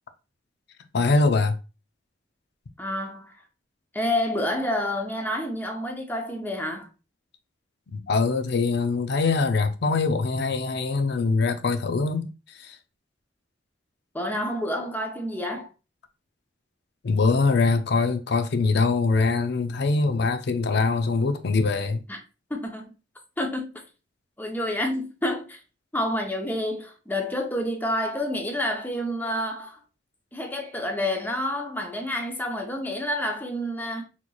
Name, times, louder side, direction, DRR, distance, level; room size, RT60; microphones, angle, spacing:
voice 1, 0.9-1.5 7.9-12.8 17.0-22.0, left 3 dB, 65° left, 0.5 m, -23 dB
voice 2, 2.8-3.4 3.9-6.9 14.1-15.7 22.1-22.2 22.5-22.9 23.4-23.7 24.4-25.6 25.9-29.8 30.3-34.0, left 1 dB, 10° left, 0.7 m, -29 dB
4.2 x 3.0 x 2.3 m
head